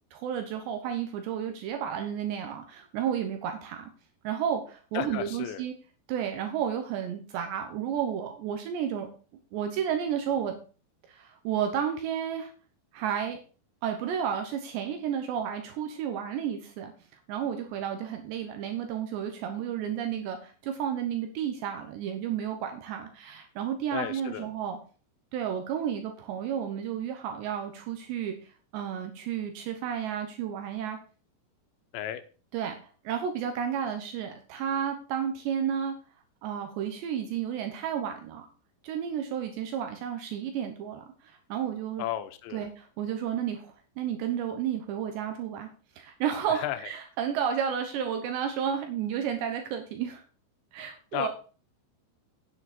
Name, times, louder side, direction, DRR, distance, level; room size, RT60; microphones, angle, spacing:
voice 1, 0.1-3.9 4.2-5.7 6.1-9.1 9.5-10.6 11.1-12.5 12.9-13.4 13.8-16.9 17.3-24.8 25.3-31.0 32.5-32.8 33.0-35.9 36.4-38.5 38.8-42.1 42.5-45.7 46.0-50.2 50.7-51.3, right 8 dB, 75° right, 5 dB, 3.2 m, -32 dB
voice 2, 4.9-5.6 23.9-24.5 31.9-32.2 42.0-42.7 46.5-46.9 51.1-51.3, left 12 dB, 80° left, 10 dB, 3.2 m, -34 dB
9.6 x 8.5 x 4.3 m, 0.38 s
omnidirectional pair, 5.2 m